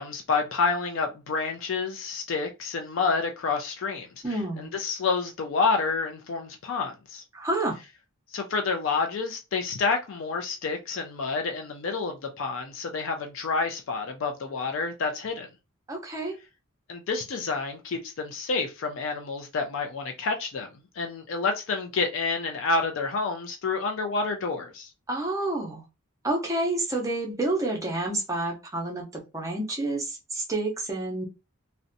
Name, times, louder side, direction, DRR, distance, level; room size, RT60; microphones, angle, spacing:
voice 1, 0.0-7.2 8.3-15.5 16.9-20.7 20.9-24.9, left 4 dB, 55° left, 0.3 m, -29 dB
voice 2, 4.2-4.7 7.3-7.8 15.9-16.3 25.1-25.8 26.2-31.2, right 2 dB, 15° right, 0.5 m, -29 dB
2.6 x 2.1 x 2.5 m
head